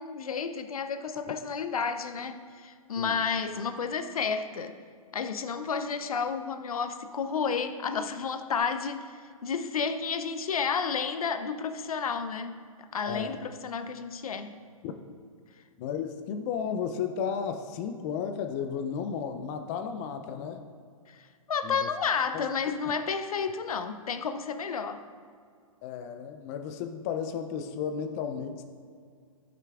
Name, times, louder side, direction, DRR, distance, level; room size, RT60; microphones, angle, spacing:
voice 1, 0.0-4.8 5.1-14.6 21.1-25.0, left 5 dB, 80° left, 10 dB, 0.6 m, -31 dB
voice 2, 13.1-13.4 14.8-14.9 15.8-20.6 21.6-21.9 22.3-22.4 25.8-28.6, left 7 dB, 30° left, 7 dB, 0.4 m, -33 dB
11.5 x 6.0 x 2.3 m, 2.1 s
hypercardioid pair, 135°, 18 cm